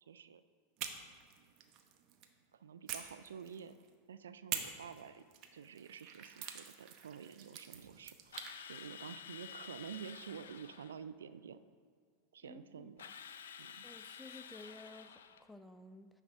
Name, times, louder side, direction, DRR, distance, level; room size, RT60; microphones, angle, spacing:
voice 1, 0.0-0.4 2.5-3.8 4.1-5.2 5.5-8.4 8.7-11.6 12.3-13.0 13.6-13.8, right 7 dB, 80° right, 12 dB, 0.3 m, -49 dB
sound 1, 0.8-2.3 2.9-3.9 4.5-8.6, right 9 dB, 50° right, 0.9 m, -46 dB
Drill, 8.3-11.0 13.0-15.5, left 8 dB, 75° left, 0.4 m, -51 dB
voice 2, 12.4-12.9 13.8-16.2, left 2 dB, ahead, 8 dB, 0.5 m, -54 dB
9.8 x 3.5 x 6.5 m, 2.1 s
hypercardioid pair, 95°, 0 cm